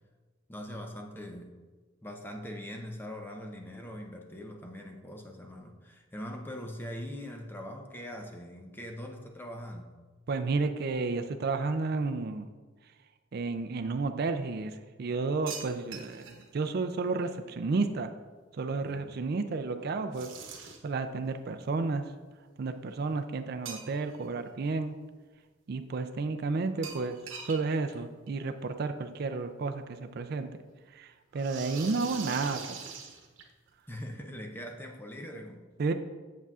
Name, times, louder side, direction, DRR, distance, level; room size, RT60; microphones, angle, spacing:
voice 1, 0.5-1.5 2.0-9.9 18.8-19.2 33.9-35.7, equal, 10° left, 2 dB, 0.6 m, -42 dB
voice 2, 10.3-12.5 13.3-18.1 18.5-20.3 20.6-22.0 22.6-25.0 25.7-27.2 27.4-30.5 30.9-32.6 35.8-35.9, right 3 dB, 55° right, 8 dB, 0.4 m, -32 dB
sound 1, 15.5-16.4 20.1-21.0 23.6-24.2 24.6-24.7 26.8-27.6 27.9-28.0 28.3-28.4 29.5-29.6 31.3-33.7, right 6 dB, 80° right, 1.0 m, -42 dB
8.0 x 7.2 x 2.4 m, 1.3 s
head